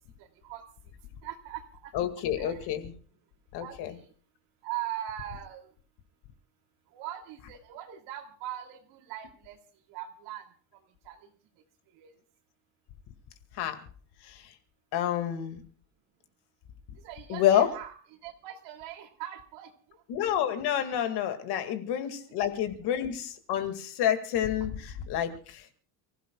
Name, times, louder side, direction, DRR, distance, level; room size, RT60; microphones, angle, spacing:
voice 1, 1.2-1.9 2.4-2.7 3.6-4.0 4.6-5.7 6.9-9.6 9.9-10.4 11.0-11.2 12.0-12.1 17.0-17.9 18.2-19.7 22.0-22.3, right 12 dB, 85° right, 4 dB, 2.8 m, -40 dB
voice 2, 1.9-3.0 3.5-4.0 13.5-13.9 14.2-14.5 14.9-15.6 17.3-17.7 20.1-25.7, left 10 dB, 65° left, 8 dB, 2.1 m, -29 dB
29.5 x 16.0 x 2.3 m, 0.42 s
cardioid pair, 170°, 42 cm